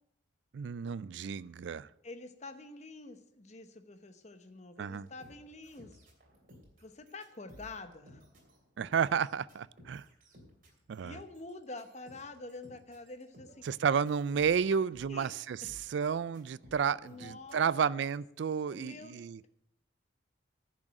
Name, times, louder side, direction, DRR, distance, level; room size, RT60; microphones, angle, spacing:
voice 1, 0.5-1.9 4.8-5.1 8.8-10.0 10.9-11.2 13.6-15.6 15.9-19.5, right 7 dB, 65° right, 0.3 m, -31 dB
voice 2, 2.0-5.9 6.8-8.2 11.0-13.7 15.1-15.4 15.6-15.7 17.0-18.0 18.7-19.5, left 3 dB, 35° left, 0.9 m, -47 dB
sound 1, 5.0-17.8, equal, 45° right, 3.1 m, -58 dB
10.5 x 6.3 x 8.8 m
head